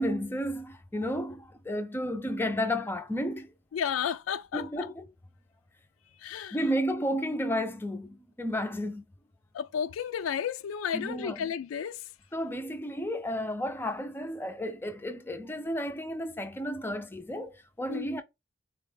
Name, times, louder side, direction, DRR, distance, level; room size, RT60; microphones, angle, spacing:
voice 1, 0.0-3.5 4.5-5.1 6.5-9.0 10.9-11.5 12.3-18.2, equal, 10° left, 0.4 m, -32 dB
voice 2, 3.7-4.9 6.2-6.6 9.5-12.0 17.9-18.1, left 8 dB, 80° left, 0.3 m, -32 dB
4.0 x 2.2 x 3.3 m
head